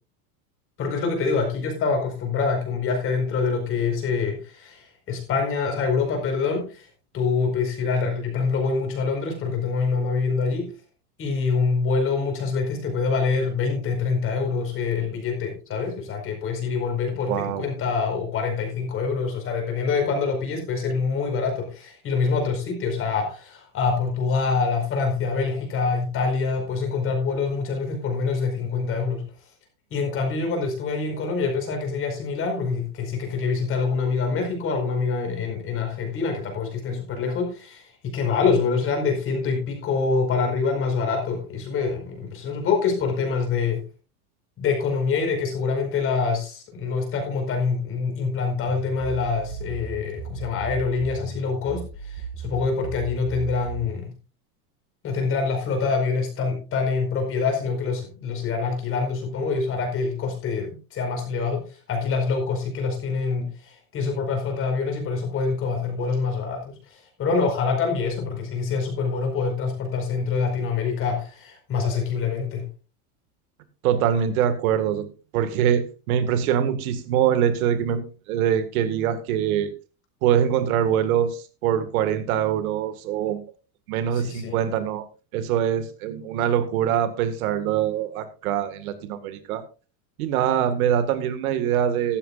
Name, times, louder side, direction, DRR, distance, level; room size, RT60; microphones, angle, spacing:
voice 1, 0.8-6.9 7.1-10.7 11.2-29.2 29.9-43.8 44.6-54.1 55.0-72.7 84.1-84.6, left 4 dB, 30° left, 3 dB, 4.9 m, -25 dB
voice 2, 17.3-17.7 73.8-75.1 75.3-79.7 80.2-83.4 83.9-85.0 85.3-89.6 90.2-92.2, right 9 dB, 70° right, 10 dB, 2.0 m, -23 dB
sound 1, 48.7-54.0, right 5 dB, 25° right, 5.1 m, -36 dB
15.0 x 12.5 x 2.5 m, 0.33 s
supercardioid pair, 155°, 45 cm